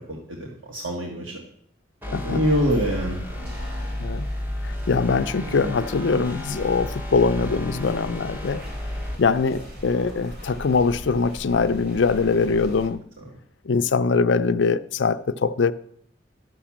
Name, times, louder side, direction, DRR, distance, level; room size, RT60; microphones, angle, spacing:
voice 1, 0.0-1.4 2.1-3.2 5.5-5.8, equal, 90° right, 1.6 m, -26 dB
sound 1, 2.0-9.2, left 1 dB, 10° right, 0.9 m, -32 dB
voice 2, 2.1-2.4 4.0-4.3 4.6-8.6 9.2-13.1 13.6-15.7, left 4 dB, 75° left, 0.5 m, -22 dB
sound 2, 2.4-12.9, equal, 55° right, 3.1 m, -39 dB
12.5 x 5.9 x 7.2 m
head